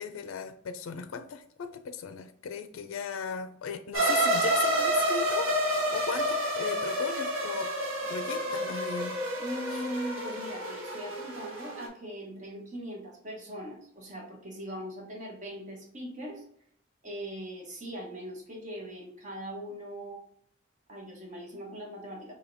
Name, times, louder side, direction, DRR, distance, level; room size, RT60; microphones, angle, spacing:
voice 1, 0.0-7.7 8.1-9.2 9.7-9.8, left 6 dB, 80° left, 9 dB, 0.4 m, -37 dB
sound 1, 3.9-11.9, right 1 dB, 80° right, 1.2 m, -29 dB
voice 2, 9.4-16.4 17.0-20.2 20.9-22.3, equal, 35° right, 0 dB, 0.9 m, -40 dB
4.9 x 2.7 x 2.6 m, 0.67 s
head